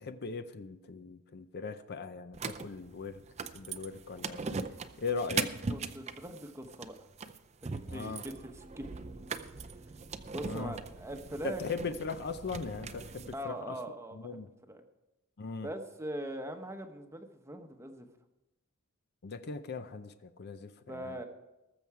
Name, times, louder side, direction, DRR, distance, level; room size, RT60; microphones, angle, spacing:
voice 1, 0.0-3.2 3.5-4.4 5.0-5.5 7.9-8.2 10.4-10.7 11.4-13.7 14.1-14.5 15.4-15.7 19.2-21.2, left 4 dB, 45° left, 11 dB, 0.6 m, -39 dB
sound 1, 2.3-13.3, right 4 dB, 30° right, 0.5 m, -40 dB
voice 2, 5.7-7.1 7.6-9.0 10.3-11.7 13.3-14.8 15.6-18.1 20.9-21.2, right 1 dB, 10° right, 6 dB, 0.9 m, -42 dB
19.5 x 7.1 x 4.7 m, 1.0 s
head